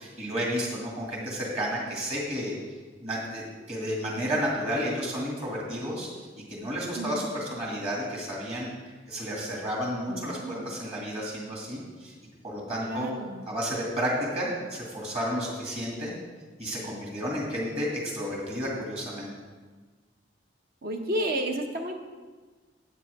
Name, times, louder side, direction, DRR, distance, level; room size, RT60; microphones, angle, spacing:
voice 1, 0.0-2.5 3.0-6.1 6.5-8.7 9.1-12.1 12.4-13.1 13.5-16.1 16.6-19.3, equal, 35° right, -3 dB, 2.4 m, -31 dB
voice 2, 7.0-7.3 10.1-10.7 12.9-13.4 20.8-21.9, right 1 dB, 55° right, 4 dB, 1.0 m, -32 dB
12.0 x 8.5 x 3.6 m, 1.4 s
head